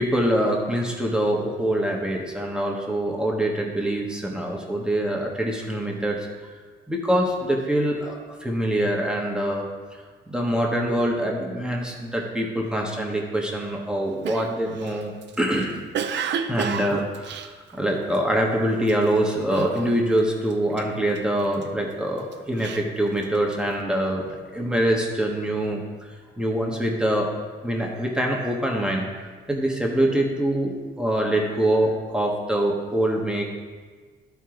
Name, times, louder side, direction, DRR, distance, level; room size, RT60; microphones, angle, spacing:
voice 1, 0.0-6.3 6.9-9.7 10.3-15.8 16.5-27.3 27.6-33.4, right 1 dB, 5° right, -1 dB, 1.4 m, -24 dB
Cough, 14.2-18.3 18.8-19.1 19.5-20.2 20.5-21.7 22.2-23.7, right 7 dB, 65° right, 0.6 m, -31 dB
12.5 x 4.6 x 3.8 m, 1.5 s
cardioid pair, 90°, 20 cm